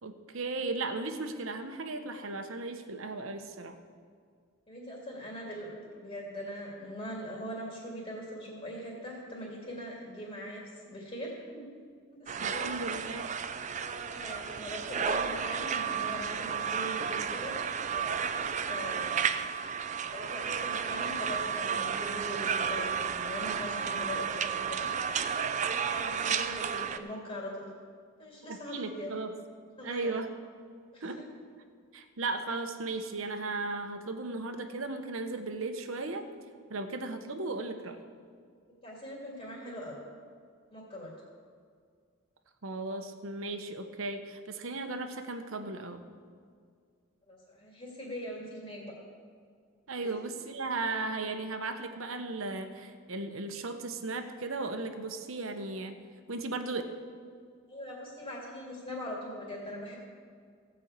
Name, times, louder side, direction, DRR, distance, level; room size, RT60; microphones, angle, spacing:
voice 1, 0.0-3.8 12.4-13.3 28.5-29.3 29.8-30.3 31.0-31.2 31.9-36.3 36.7-38.0 42.6-46.0 49.9-55.9 56.3-56.8, right 3 dB, 75° right, 7 dB, 1.0 m, -36 dB
voice 2, 4.7-11.7 12.1-12.7 14.1-17.6 17.9-19.3 20.1-24.9 25.6-27.7 28.2-29.1 29.8-30.1 30.9-31.3 38.8-40.0 40.7-41.1 47.3-48.9 50.0-50.1 57.7-60.0, equal, 25° left, -3 dB, 2.5 m, -41 dB
sound 1, 12.3-27.0, right 7 dB, 35° right, 0.4 m, -32 dB
16.0 x 5.5 x 8.1 m, 2.1 s
head